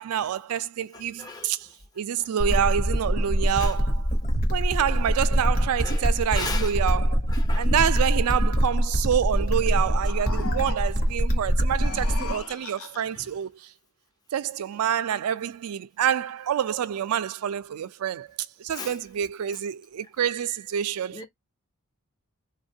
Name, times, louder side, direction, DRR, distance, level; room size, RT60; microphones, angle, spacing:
voice 1, 0.0-1.7 2.0-4.1 4.5-7.2 7.5-13.5 14.3-18.3 18.6-21.2, right 9 dB, 80° right, 0.4 m, -27 dB
voice 2, 1.2-1.5 3.6-3.7 5.8-6.7 7.3-7.7 18.7-18.9 21.1-21.2, left 3 dB, 20° left, 0.5 m, -35 dB
sound 1, 2.4-12.4, equal, 40° left, 0.9 m, -24 dB
sound 2, 9.8-11.1 11.7-13.3, left 4 dB, 70° left, 0.7 m, -39 dB
3.2 x 2.2 x 2.6 m
head